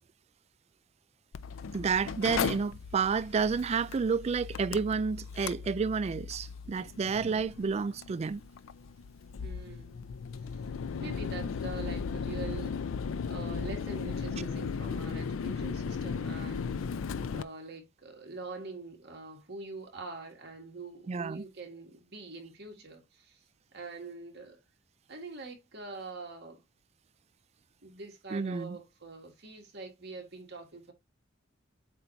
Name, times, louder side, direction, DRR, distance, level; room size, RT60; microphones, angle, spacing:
Mechanical fan, 1.3-17.4, left 5 dB, 80° left, 0.4 m, -36 dB
voice 1, 1.7-8.4 21.1-21.4 28.3-28.8, right 5 dB, 30° right, 0.3 m, -30 dB
voice 2, 9.4-10.1 10.4-10.6 11.0-12.9 13.3-16.8 17.3-23.4 23.7-24.6 25.1-26.6 27.8-30.9, right 3 dB, 55° right, 2.1 m, -44 dB
8.1 x 2.7 x 4.5 m
head